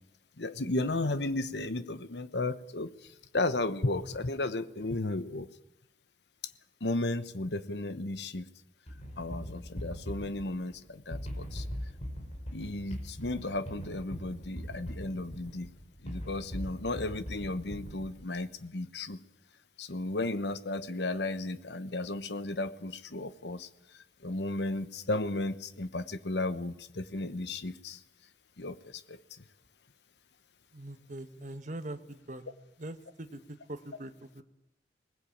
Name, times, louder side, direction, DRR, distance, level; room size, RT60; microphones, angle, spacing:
voice 1, 0.4-5.5 6.8-8.5 9.2-11.6 12.5-15.7 16.0-19.2 19.8-23.7 23.9-28.0 28.6-29.4, left 2 dB, 70° left, 12 dB, 1.1 m, -34 dB
sound 1, 8.9-18.4, equal, 40° left, 5.3 m, -41 dB
voice 2, 30.7-32.4 32.8-34.4, right 1 dB, 45° right, 8 dB, 1.4 m, -42 dB
20.5 x 19.5 x 8.7 m, 0.88 s
head